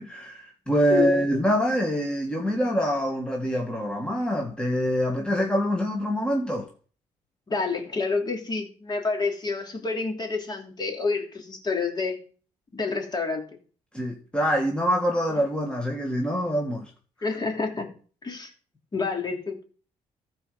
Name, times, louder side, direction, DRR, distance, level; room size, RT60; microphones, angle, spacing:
voice 1, 0.0-6.7 13.9-16.9, equal, 5° left, 1.8 m, -25 dB
voice 2, 0.9-1.4 7.5-12.2 12.7-13.4 17.2-17.9 18.2-18.5 18.9-19.6, left 4 dB, 35° left, 3.1 m, -28 dB
14.0 x 4.8 x 6.7 m
cardioid pair, 85°, 13 cm